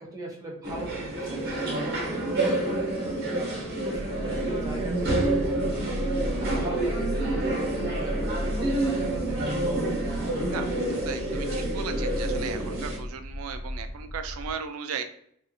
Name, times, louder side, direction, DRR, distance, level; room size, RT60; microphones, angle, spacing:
voice 1, 0.0-1.7 2.0-6.0 6.4-9.8, right 1 dB, 15° right, -2 dB, 0.6 m, -39 dB
sound 1, 0.6-13.0, right 2 dB, 50° right, 1.0 m, -28 dB
sound 2, 3.9-14.5, equal, 85° left, 0.6 m, -35 dB
voice 2, 11.0-15.0, right 6 dB, 85° right, 8 dB, 0.4 m, -36 dB
2.7 x 2.4 x 2.6 m, 0.66 s
head